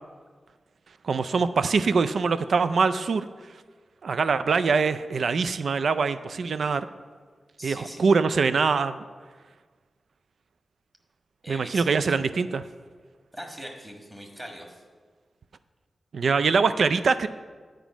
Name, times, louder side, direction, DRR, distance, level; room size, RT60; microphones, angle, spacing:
voice 1, 1.0-3.3 4.0-6.9 7.6-9.0 11.5-12.6 16.1-17.3, right 5 dB, 70° right, 12 dB, 0.3 m, -23 dB
voice 2, 7.6-8.0 11.4-12.0 13.3-14.8, equal, 20° right, 1 dB, 1.4 m, -41 dB
9.2 x 5.1 x 7.0 m, 1.5 s
wide cardioid pair, 145°, 0 cm